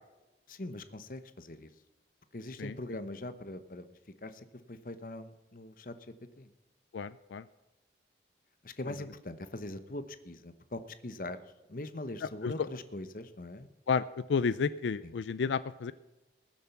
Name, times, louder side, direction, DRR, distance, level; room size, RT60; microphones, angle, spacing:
voice 1, 0.5-1.7 2.3-3.9 4.2-5.9 6.4-6.5 8.6-11.4 11.7-13.7 15.0-15.1, left 1 dB, 50° left, 11 dB, 1.0 m, -42 dB
voice 2, 6.9-7.4 8.9-9.0 12.2-12.7 13.9-15.9, left 5 dB, 90° left, 15 dB, 0.4 m, -31 dB
20.0 x 7.3 x 5.9 m, 1.1 s
head